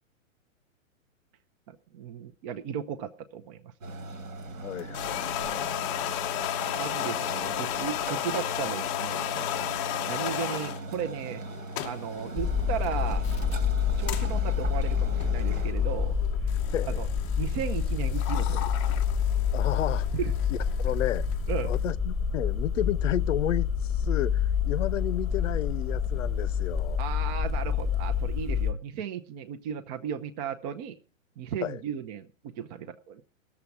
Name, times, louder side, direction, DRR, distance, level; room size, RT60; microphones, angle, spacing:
voice 1, 1.7-4.0 5.3-5.7 6.8-9.6 10.1-11.4 11.8-13.2 14.0-16.2 16.4-16.5 17.0-17.1 17.4-18.8 20.1-20.3 21.5-21.7 27.0-31.0 31.4-33.2, right 8 dB, 30° right, 0.6 m, -35 dB
sound 1, 3.8-15.7, right 3 dB, 75° right, 2.0 m, -39 dB
voice 2, 4.6-5.6 16.7-17.0 19.5-20.1 20.5-21.2 21.6-23.7 24.0-27.0 31.6-31.8, left 12 dB, 65° left, 0.7 m, -32 dB
sound 2, 4.8-10.8 11.5-21.9, left 12 dB, 25° left, 0.5 m, -34 dB
sound 3, 12.4-28.7, left 7 dB, ahead, 1.1 m, -27 dB
18.5 x 7.2 x 4.6 m
hypercardioid pair, 130°, 41 cm